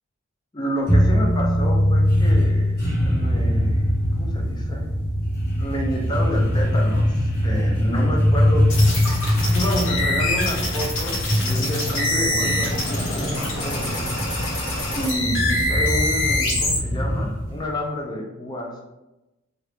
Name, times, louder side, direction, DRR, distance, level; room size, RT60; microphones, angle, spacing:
voice 1, 0.5-3.9 4.1-4.9 5.6-8.7 9.5-14.1 14.9-18.7, equal, 20° left, 0 dB, 0.5 m, -29 dB
sound 1, 0.9-17.7, equal, 50° left, 1.1 m, -22 dB
sound 2, 8.7-16.8, left 2 dB, 70° left, 0.9 m, -25 dB
2.9 x 2.5 x 3.3 m, 1.0 s
head